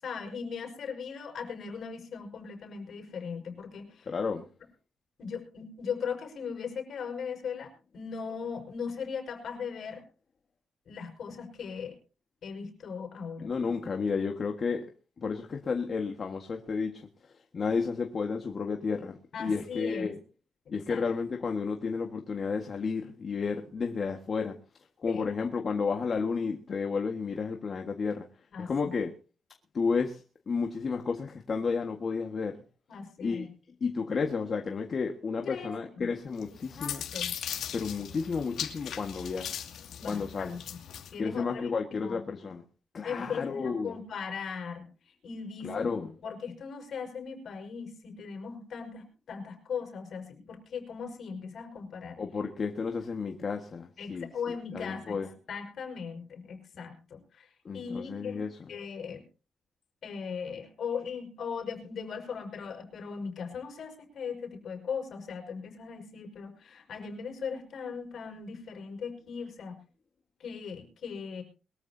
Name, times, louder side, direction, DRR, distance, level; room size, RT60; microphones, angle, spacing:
voice 1, 0.0-4.1 5.2-7.7 7.9-10.0 10.9-11.9 12.4-13.7 19.3-20.1 20.9-21.0 25.1-25.3 28.5-28.9 32.9-33.5 35.4-36.1 36.8-37.3 40.0-40.8 41.1-41.7 42.0-42.3 43.0-44.9 45.2-45.9 46.2-52.2 54.0-55.2 55.5-57.5 57.7-58.4 58.7-59.2 60.0-69.8 70.4-71.4, left 6 dB, 55° left, 5.6 m, -38 dB
voice 2, 4.1-4.5 13.4-14.8 15.2-17.1 17.5-20.1 20.7-24.5 25.0-28.2 28.6-29.1 29.7-32.6 33.2-33.5 33.8-37.0 37.7-39.6 40.1-40.5 41.2-42.6 42.9-44.0 45.6-46.1 52.2-54.3 54.7-55.3 57.6-58.6, left 5 dB, 40° left, 1.7 m, -32 dB
sound 1, 36.4-41.1, left 9 dB, 80° left, 2.4 m, -38 dB
23.0 x 14.0 x 2.8 m
cardioid pair, 140°, 0 cm